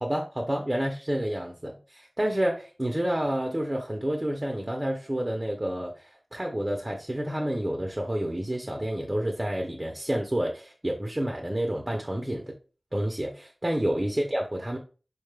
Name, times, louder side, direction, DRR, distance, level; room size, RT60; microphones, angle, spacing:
voice 1, 0.0-12.5 12.9-14.8, right 1 dB, 30° right, 1 dB, 0.5 m, -29 dB
4.0 x 2.2 x 3.2 m, 0.36 s
wide cardioid pair, 50°, 0 cm